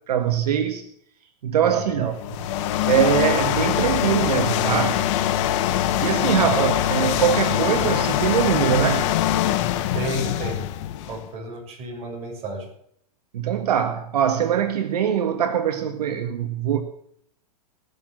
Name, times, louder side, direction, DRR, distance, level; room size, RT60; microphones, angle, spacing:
voice 1, 0.1-0.8 1.4-2.1 2.8-5.0 6.0-9.1 13.3-16.8, right 9 dB, 85° right, 6 dB, 1.7 m, -22 dB
voice 2, 1.6-2.1 6.4-6.7 9.9-10.6 11.1-12.6, right 4 dB, 30° right, -1 dB, 6.9 m, -30 dB
sound 1, 2.1-11.3, left 11 dB, 50° left, 1.3 m, -23 dB
19.0 x 7.2 x 7.4 m, 0.68 s
hypercardioid pair, 140°, 20 cm